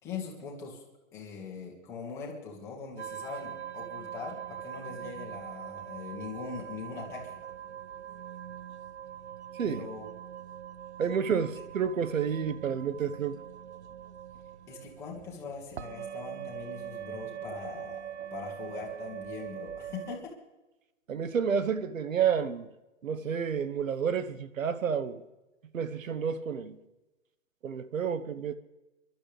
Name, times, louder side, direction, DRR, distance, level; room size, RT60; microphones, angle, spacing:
voice 1, 0.0-0.8 1.1-7.4 9.6-10.1 11.0-11.2 14.7-18.0 18.3-20.3, left 5 dB, 5° left, 1.6 m, -41 dB
sound 1, 3.0-20.2, right 9 dB, 55° right, 0.8 m, -42 dB
voice 2, 11.0-13.4 21.1-22.7 23.0-25.2 25.7-26.8 27.6-28.6, right 7 dB, 90° right, 1.3 m, -30 dB
24.5 x 12.0 x 3.4 m
hypercardioid pair, 175°, 39 cm